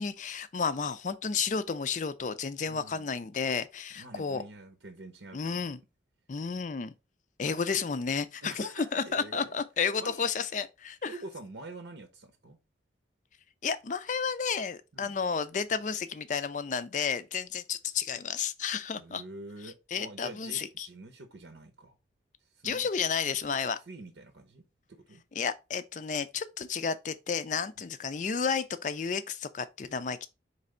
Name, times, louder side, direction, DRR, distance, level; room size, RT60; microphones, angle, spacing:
voice 1, 0.0-4.4 5.3-5.8 6.3-6.9 7.4-11.1 13.6-19.2 19.9-20.9 22.6-23.8 25.4-30.3, left 6 dB, 45° left, 0.4 m, -32 dB
voice 2, 2.6-3.1 3.9-5.7 7.5-7.6 8.4-9.5 10.0-10.5 11.0-12.6 14.9-15.2 18.9-22.0 22.4-22.9 23.6-24.6 24.9-25.2, right 2 dB, 85° right, 0.8 m, -46 dB
4.3 x 3.3 x 3.7 m
head